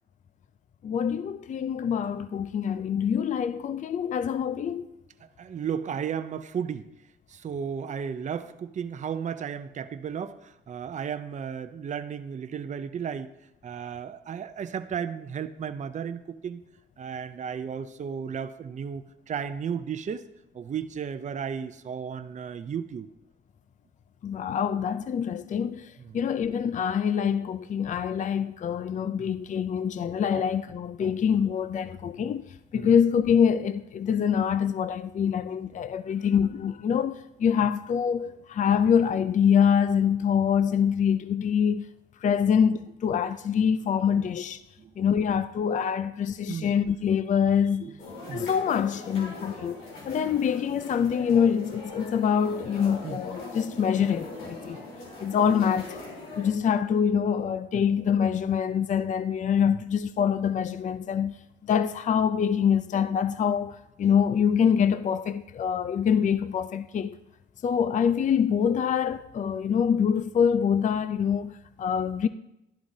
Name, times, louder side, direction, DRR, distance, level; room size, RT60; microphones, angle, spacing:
voice 1, 0.8-4.9 24.2-25.8 26.1-32.4 32.7-41.8 42.2-44.6 45.0-47.9 48.3-49.8 50.1-54.8 55.2-56.0 56.4-61.4 61.6-67.2 67.6-72.3, left 7 dB, 40° left, 0.4 m, -25 dB
voice 2, 5.4-6.9 7.3-13.3 13.6-16.6 17.0-20.2 20.5-23.1 26.0-26.2 29.2-29.3 31.0-31.1 32.2-32.3 32.7-32.9 44.2-44.3 44.8-44.9 46.5-46.7 47.8-48.0 48.3-48.5 53.0-53.2 54.7-54.8 59.7-59.8, right 7 dB, 40° right, 0.6 m, -34 dB
sound 1, 48.0-56.5, left 2 dB, 90° left, 3.8 m, -41 dB
11.5 x 11.0 x 2.8 m
cardioid pair, 90°, 20 cm